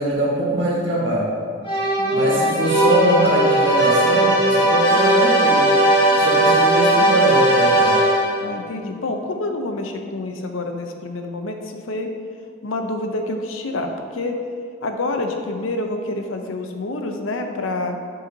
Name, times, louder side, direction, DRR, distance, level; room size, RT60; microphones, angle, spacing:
voice 1, 0.0-1.3 2.1-5.7 6.2-8.0, right 1 dB, 65° right, -5 dB, 1.7 m, -22 dB
sound 1, 1.6-8.5, right 1 dB, 25° left, 1.2 m, -17 dB
voice 2, 2.0-2.5 6.1-6.3 8.4-12.1 12.6-14.4 14.8-18.0, left 2 dB, 90° left, 5 dB, 0.6 m, -27 dB
7.9 x 5.6 x 2.8 m, 2.2 s
head